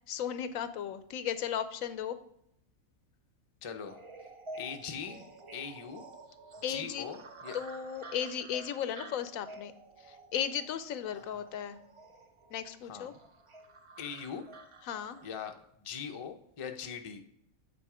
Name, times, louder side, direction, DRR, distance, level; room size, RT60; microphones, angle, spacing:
voice 1, 0.1-2.2 6.6-7.1 7.5-9.7 10.0-11.8 12.5-13.1 14.8-15.2, left 9 dB, 75° left, 12 dB, 1.0 m, -35 dB
voice 2, 3.6-4.0 4.6-5.2 5.5-6.0 6.7-7.6 11.2-11.4 12.8-13.2 14.0-14.4 15.2-17.2, left 7 dB, 35° left, 5 dB, 0.5 m, -41 dB
sound 1, 3.9-15.4, right 2 dB, 40° right, 0.5 m, -50 dB
8.5 x 4.2 x 4.8 m, 0.76 s
omnidirectional pair, 1.5 m